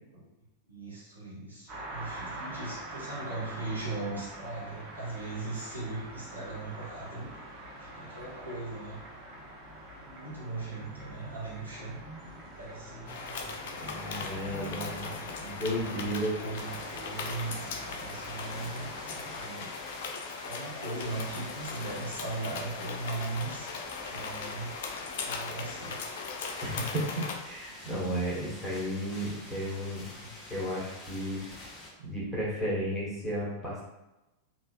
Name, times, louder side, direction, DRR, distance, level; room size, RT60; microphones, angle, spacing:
voice 1, 0.7-7.3 7.8-9.0 10.0-12.0 12.6-13.1 14.7-15.3 15.8-19.7 20.4-23.7 24.1-24.8 25.2-26.0, right 3 dB, 80° right, -8 dB, 1.1 m, -39 dB
sound 1, 1.7-19.5, right 1 dB, 25° right, 0.9 m, -45 dB
sound 2, 13.1-27.4, left 5 dB, 55° left, 0.4 m, -39 dB
voice 2, 13.8-15.0 15.4-16.4 26.6-30.1 30.5-31.4 32.0-33.8, equal, ahead, -8 dB, 1.3 m, -33 dB
sound 3, 16.5-31.9, left 1 dB, 20° left, 0.6 m, -47 dB
3.2 x 2.6 x 2.5 m, 0.97 s
figure-of-eight pair, 90°, 0 cm